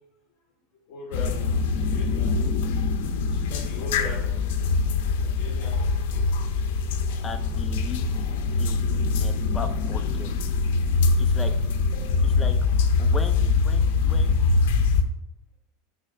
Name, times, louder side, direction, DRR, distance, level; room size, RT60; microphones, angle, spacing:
voice 1, 0.9-2.5 3.3-4.3 5.2-6.3, left 2 dB, 50° left, -5 dB, 2.1 m, -40 dB
sound 1, 1.1-15.0, left 4 dB, 70° left, 0.9 m, -23 dB
voice 2, 7.2-8.3 8.6-10.3 11.2-11.5 12.2-12.6 13.0-14.4, left 4 dB, 15° left, 6 dB, 0.7 m, -38 dB
9.8 x 3.4 x 7.0 m, 0.88 s
supercardioid pair, 170°, 0 cm